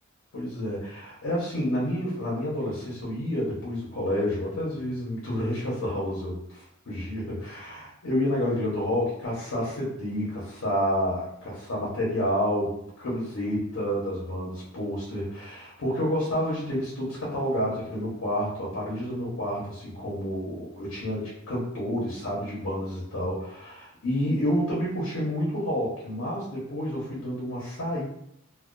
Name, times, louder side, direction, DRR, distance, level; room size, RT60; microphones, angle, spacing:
voice 1, 0.3-28.1, equal, 75° left, -6 dB, 0.8 m, -29 dB
2.3 x 2.2 x 2.4 m, 0.75 s
head